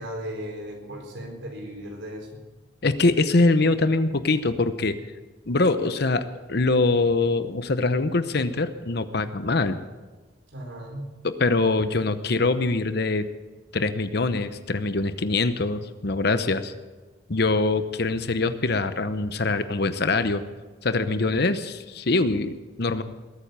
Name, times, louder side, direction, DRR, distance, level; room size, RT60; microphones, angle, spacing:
voice 1, 0.0-2.3 10.5-11.1, equal, 75° right, 1 dB, 4.4 m, -36 dB
voice 2, 2.8-5.0 5.5-9.8 11.2-13.3 13.7-16.7 17.3-20.4 20.8-23.0, left 3 dB, 60° left, 11 dB, 0.9 m, -23 dB
21.0 x 9.2 x 6.9 m, 1.2 s
head